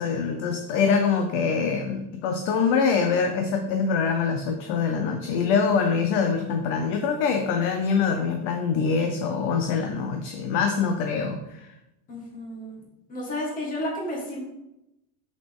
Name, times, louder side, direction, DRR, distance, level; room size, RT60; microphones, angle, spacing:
voice 1, 0.0-11.7, left 5 dB, 40° left, 5 dB, 0.5 m, -24 dB
voice 2, 12.1-12.8 13.1-14.4, left 1 dB, 20° left, -2 dB, 1.7 m, -32 dB
6.2 x 6.2 x 3.5 m, 0.91 s
cardioid pair, 180°, 43 cm